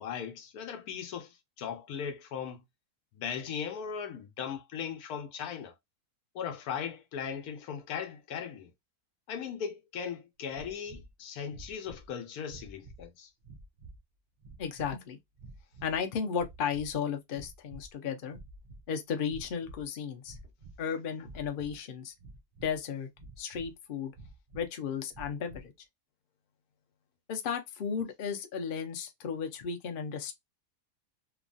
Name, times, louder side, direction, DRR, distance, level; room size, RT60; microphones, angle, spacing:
voice 1, 0.0-2.6 3.1-5.7 6.3-8.7 9.3-13.3, left 7 dB, 75° left, 1.2 m, -38 dB
sound 1, 10.5-11.1 11.5-12.1 12.4-13.1 13.4-14.0 14.4-14.9 15.4-16.0 16.3-17.0 17.3-17.9 18.3-18.8 19.2-19.9 20.2-20.8 21.2-21.8 22.2-22.8 23.1-23.7 24.1-24.7 25.1-25.7, right 2 dB, 80° right, 0.4 m, -50 dB
voice 2, 14.6-15.2 15.8-18.4 18.9-20.4 20.8-22.1 22.6-23.1 23.4-24.1 24.5-25.7 27.3-30.3, left 7 dB, 55° left, 0.6 m, -34 dB
3.0 x 2.3 x 2.5 m
omnidirectional pair, 1.6 m